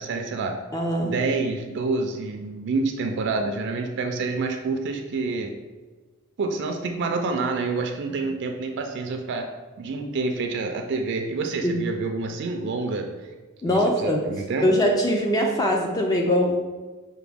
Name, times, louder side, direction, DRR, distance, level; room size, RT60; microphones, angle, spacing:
voice 1, 0.0-0.6 1.0-5.5 6.4-9.5 9.8-13.1 13.6-14.7, right 3 dB, 55° right, 4 dB, 0.4 m, -27 dB
voice 2, 0.7-1.1 11.6-11.8 13.6-14.2 14.6-16.6, equal, 15° left, 1 dB, 0.4 m, -22 dB
5.8 x 2.2 x 3.4 m, 1.3 s
head